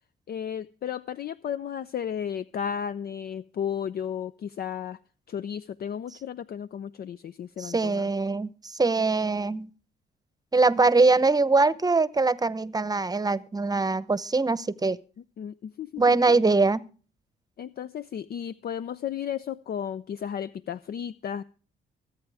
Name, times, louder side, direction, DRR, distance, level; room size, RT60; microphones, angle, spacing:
voice 1, 0.3-5.0 5.3-8.1 15.4-16.4 17.6-21.4, left 8 dB, 50° left, 0.6 m, -34 dB
voice 2, 7.6-9.7 10.5-15.0 16.0-16.8, right 3 dB, 20° right, 0.9 m, -22 dB
25.0 x 9.0 x 3.5 m
cardioid pair, 90°, 20 cm